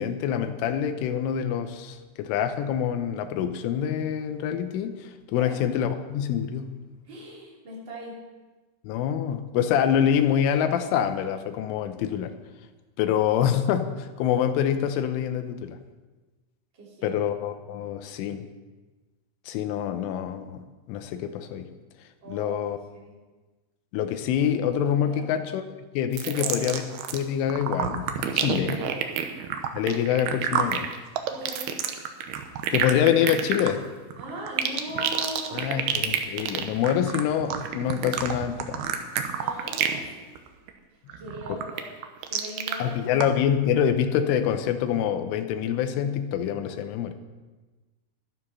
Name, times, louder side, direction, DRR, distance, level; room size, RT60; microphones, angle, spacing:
voice 1, 0.0-6.8 8.9-12.3 13.0-15.8 17.0-18.5 19.5-21.7 22.3-22.8 23.9-25.6 26.0-26.8 27.1-28.8 29.7-30.9 32.7-33.8 35.6-38.8 41.5-41.6 42.8-47.1, left 9 dB, 80° left, 8 dB, 3.3 m, -26 dB
voice 2, 5.3-5.6 7.1-8.2 16.7-17.2 22.2-23.1 25.0-25.3 26.2-26.8 28.4-29.0 31.3-31.8 34.2-35.8 39.3-40.4 41.2-41.9 42.3-43.3, equal, 25° right, -4 dB, 3.1 m, -39 dB
sound 1, 26.1-27.2 27.5-40.1 40.4-40.7 41.1-42.7 43.2-43.3, right 8 dB, 80° right, 2.2 m, -28 dB
12.0 x 12.0 x 5.5 m, 1.2 s
omnidirectional pair, 5.7 m